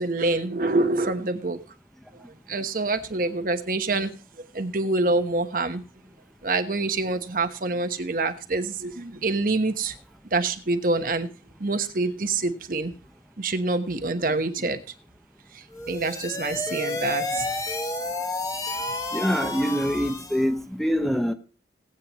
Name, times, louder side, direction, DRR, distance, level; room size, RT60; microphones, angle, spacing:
voice 1, 0.0-1.6 2.1-5.8 6.4-9.9 10.3-11.3 11.6-12.9 13.4-14.8 15.5-17.5, right 3 dB, 50° right, 1.1 m, -26 dB
sound 1, 15.7-20.5, left 2 dB, 20° left, 1.2 m, -31 dB
voice 2, 19.1-21.3, equal, ahead, 0.9 m, -24 dB
19.0 x 9.0 x 3.0 m
head